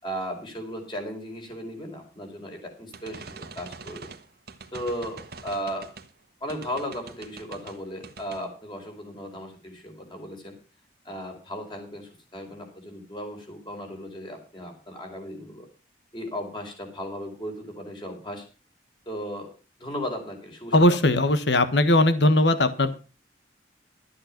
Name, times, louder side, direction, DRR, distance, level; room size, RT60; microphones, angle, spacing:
voice 1, 0.0-4.1 4.7-5.9 6.4-10.5 11.0-15.7 16.1-18.4 19.1-19.5 19.8-21.0, equal, 25° left, 3 dB, 4.5 m, -36 dB
sound 1, 2.9-6.1 6.5-7.8 8.0-8.4, right 4 dB, 55° right, 1.5 m, -43 dB
voice 2, 20.7-23.0, left 1 dB, 65° left, 11 dB, 1.3 m, -19 dB
13.0 x 8.8 x 5.9 m, 0.34 s
head